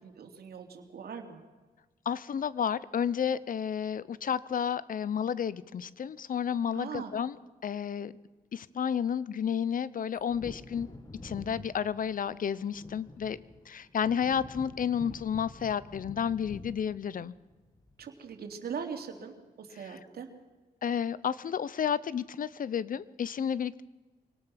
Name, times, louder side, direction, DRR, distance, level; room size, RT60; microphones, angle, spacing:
voice 1, 0.0-1.4 6.7-7.1 18.0-20.3, right 6 dB, 75° right, 4 dB, 3.0 m, -41 dB
voice 2, 2.1-7.4 7.6-8.1 8.5-11.0 11.2-17.3 19.8-20.0 20.8-23.8, left 8 dB, 55° left, 19 dB, 0.8 m, -31 dB
Wind / Thunder, 10.2-18.4 18.7-18.8, left 2 dB, 25° left, 2.1 m, -48 dB
24.5 x 18.5 x 6.0 m, 1.3 s
cardioid pair, 80°, 16 cm